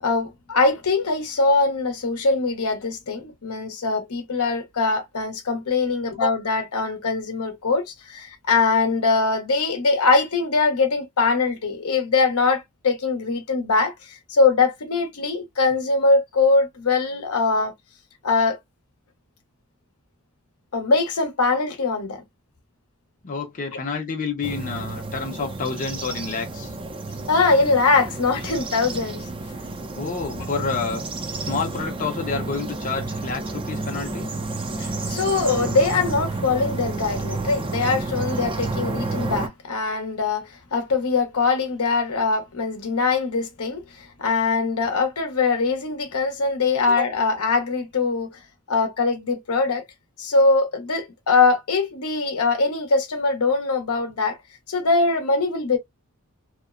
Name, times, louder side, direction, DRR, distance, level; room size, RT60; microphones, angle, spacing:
voice 1, 0.0-17.7 18.2-18.6 20.7-22.2 27.3-29.2 34.8-48.4 48.7-49.8 50.2-54.4 54.7-55.8, left 3 dB, 75° left, 0.8 m, -22 dB
voice 2, 23.2-26.7 30.0-31.0 31.5-34.3, left 4 dB, 40° left, 0.7 m, -29 dB
sound 1, 24.4-39.5, right 3 dB, 25° right, 0.5 m, -30 dB
2.9 x 2.0 x 2.3 m
head